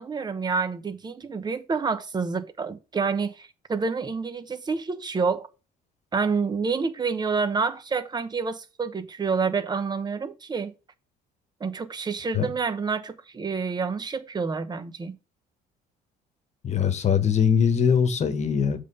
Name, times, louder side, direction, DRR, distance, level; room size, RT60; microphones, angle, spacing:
voice 1, 0.0-5.5 6.1-10.7 11.6-15.2, right 5 dB, 25° right, 0.9 m, -28 dB
voice 2, 16.6-18.8, left 7 dB, 40° left, 1.3 m, -22 dB
7.4 x 3.7 x 5.4 m
cardioid pair, 110°, 17 cm